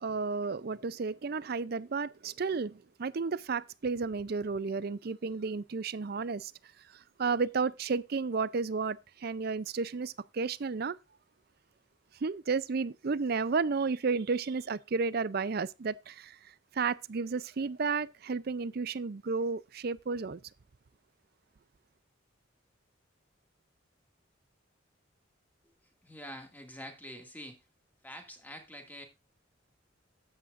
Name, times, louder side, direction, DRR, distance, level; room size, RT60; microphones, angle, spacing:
voice 1, 0.0-6.5 6.9-11.0 12.2-16.4 16.7-20.4, right 4 dB, 55° right, 0.5 m, -32 dB
voice 2, 26.0-27.7 28.0-29.0, equal, 10° left, 2.1 m, -46 dB
13.5 x 8.8 x 2.5 m
head